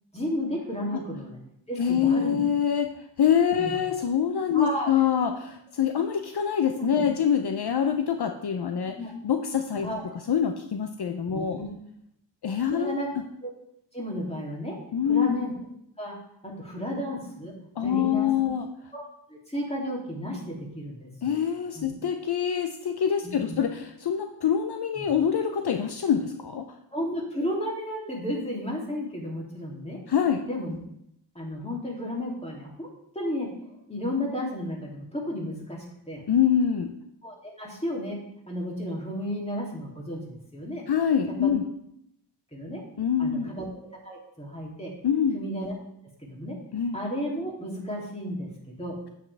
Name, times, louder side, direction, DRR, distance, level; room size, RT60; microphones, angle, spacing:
voice 1, 0.1-1.4 1.7-2.4 3.6-3.8 4.5-4.9 6.7-7.1 9.0-9.1 9.8-10.0 11.3-11.7 12.7-13.1 13.4-13.5 13.9-14.8 15.1-15.5 16.0-16.2 16.4-17.5 17.8-18.3 18.9-19.0 19.3-21.4 21.7-21.9 23.2-23.6 25.0-25.1 26.9-30.0 30.4-30.7 31.3-32.9 33.1-36.2 37.2-38.2 38.5-40.8 41.4-41.5 42.5-42.8 43.2-44.9 45.3-45.7 46.2-46.6 46.9-49.0, left 1 dB, 15° left, -2 dB, 2.8 m, -33 dB
voice 2, 1.8-2.9 3.2-8.9 9.2-9.9 10.3-11.6 12.4-12.9 14.9-15.3 17.8-18.7 21.2-26.7 30.1-30.5 36.3-36.9 40.9-41.7 43.0-43.5 45.0-45.4 46.7-47.0, left 8 dB, 65° left, 6 dB, 0.7 m, -25 dB
8.3 x 7.5 x 3.4 m, 0.75 s
cardioid pair, 55°, 43 cm